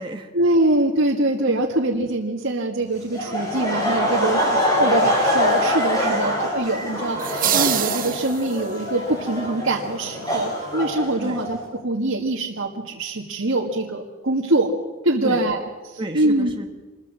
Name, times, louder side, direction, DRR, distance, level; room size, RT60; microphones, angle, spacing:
voice 1, 0.3-4.4 4.8-11.6 11.8-14.7 15.0-16.5, right 2 dB, 75° right, -2 dB, 1.9 m, -23 dB
Laughter, 3.1-11.6, left 1 dB, 20° left, 6.6 m, -24 dB
voice 2, 4.1-4.9 6.0-6.3 11.2-11.4 15.2-15.4 16.0-16.7, right 1 dB, 25° right, 2 dB, 1.4 m, -33 dB
sound 1, 4.8-10.9, left 1 dB, 70° left, 3.1 m, -41 dB
sound 2, 7.2-8.8, right 12 dB, 45° right, 0.7 m, -25 dB
25.5 x 21.5 x 6.4 m, 1.3 s
head